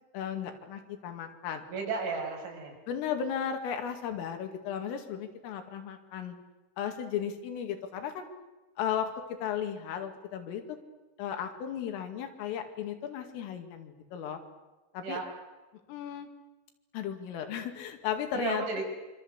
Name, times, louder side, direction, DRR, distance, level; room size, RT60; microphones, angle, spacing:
voice 1, 0.1-1.6 2.9-6.4 6.8-8.3 8.8-9.1 9.4-10.8 11.2-14.4 14.9-15.2 15.9-16.3 16.9-18.6, left 8 dB, 85° left, 5 dB, 4.9 m, -35 dB
voice 2, 1.7-2.8 15.0-15.3 18.3-18.8, right 4 dB, 70° right, 2 dB, 8.9 m, -33 dB
26.0 x 25.5 x 8.1 m, 1.2 s
omnidirectional pair, 5.7 m